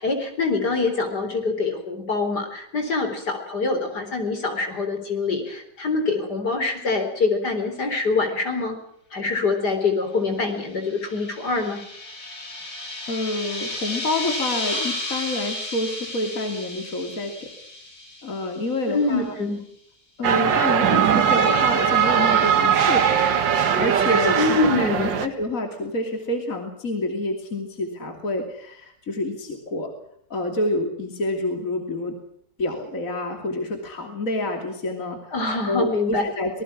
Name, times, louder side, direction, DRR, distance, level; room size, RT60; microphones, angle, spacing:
voice 1, 0.0-8.8 9.1-11.8 18.9-19.6 24.3-25.2 35.3-36.3, left 3 dB, 65° left, 6 dB, 4.5 m, -24 dB
sound 1, 10.5-18.9, left 1 dB, 85° left, 6.7 m, -33 dB
voice 2, 13.1-17.5 18.2-19.4 20.2-23.3 23.8-29.9 30.3-32.2 32.6-35.3 35.7-36.6, left 1 dB, 45° left, 4 dB, 3.3 m, -28 dB
sound 2, 20.2-25.3, right 8 dB, 90° right, 2.2 m, -20 dB
26.0 x 20.0 x 6.2 m, 0.67 s
omnidirectional pair, 1.9 m